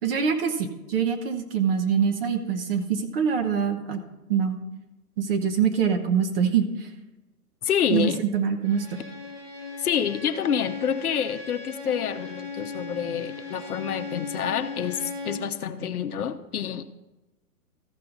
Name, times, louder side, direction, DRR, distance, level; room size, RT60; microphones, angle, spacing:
voice 1, 0.0-4.0 4.3-4.6 5.2-6.7 7.9-9.0, right 7 dB, 40° right, 6 dB, 1.1 m, -24 dB
voice 2, 7.6-8.2 9.8-16.8, left 8 dB, 65° left, 9 dB, 0.8 m, -27 dB
Bowed string instrument, 8.6-15.6, left 3 dB, 10° right, 0.7 m, -38 dB
14.5 x 5.6 x 4.0 m, 1.0 s
hypercardioid pair, 140°, 47 cm